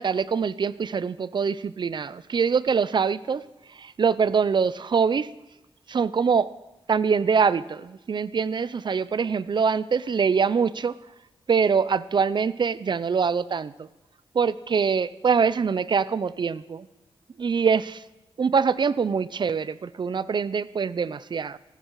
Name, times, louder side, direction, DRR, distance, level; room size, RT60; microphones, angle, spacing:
voice 1, 0.0-3.4 3.8-5.3 5.9-6.5 6.9-10.9 11.5-13.9 14.3-16.9 17.4-18.0 18.4-21.6, right 6 dB, 50° right, 18 dB, 0.6 m, -24 dB
19.0 x 15.5 x 4.8 m, 0.97 s
cardioid pair, 80°, 10 cm